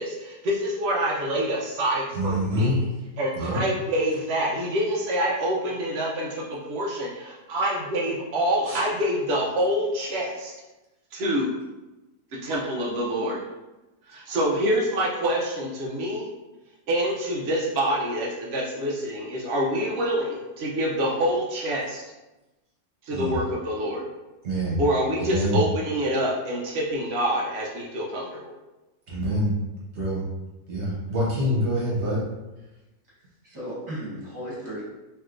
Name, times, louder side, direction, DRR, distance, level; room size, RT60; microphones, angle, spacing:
voice 1, 0.0-2.8 3.2-10.5 11.1-11.5 12.3-13.4 14.1-16.3 16.9-22.0 23.0-24.0 24.8-28.3, equal, 85° right, -4 dB, 0.5 m, -26 dB
voice 2, 2.1-2.8 3.3-3.6 8.6-8.8 23.1-23.3 24.4-24.8 25.2-25.6 29.1-29.6 29.9-30.3 30.7-32.2, equal, 50° right, -6 dB, 1.0 m, -25 dB
voice 3, 33.2-34.8, equal, 20° right, -7 dB, 1.0 m, -36 dB
3.3 x 2.8 x 2.4 m, 1.1 s
omnidirectional pair, 1.8 m